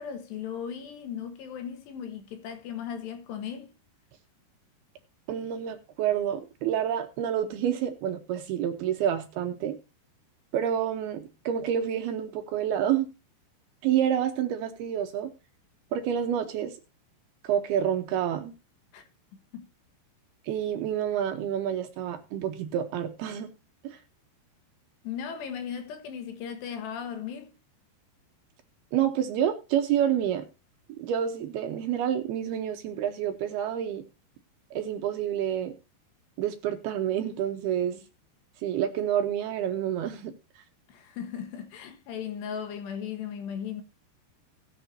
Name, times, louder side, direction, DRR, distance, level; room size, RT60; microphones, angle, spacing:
voice 1, 0.0-3.7 18.9-19.0 19.5-19.7 25.0-27.5 40.9-43.8, left 8 dB, 75° left, 3.5 m, -37 dB
voice 2, 5.3-9.8 10.5-13.1 13.8-15.3 15.9-16.8 17.4-18.5 20.4-23.5 23.8-24.0 28.9-30.5 31.0-34.0 34.7-35.7 36.4-38.0 38.6-40.3, right 10 dB, 75° right, 2.7 m, -28 dB
20.0 x 6.8 x 2.7 m
omnidirectional pair, 5.1 m